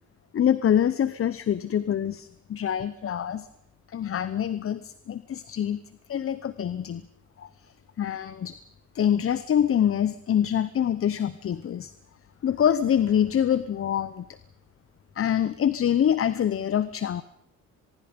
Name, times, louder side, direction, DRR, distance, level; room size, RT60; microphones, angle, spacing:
voice 1, 0.3-3.5 3.9-5.8 6.1-7.0 7.4-7.5 8.0-8.6 8.9-11.9 12.4-14.2 15.2-17.2, left 9 dB, 45° left, 15 dB, 0.8 m, -25 dB
24.0 x 22.0 x 5.3 m, 0.73 s
cardioid pair, 90°, 30 cm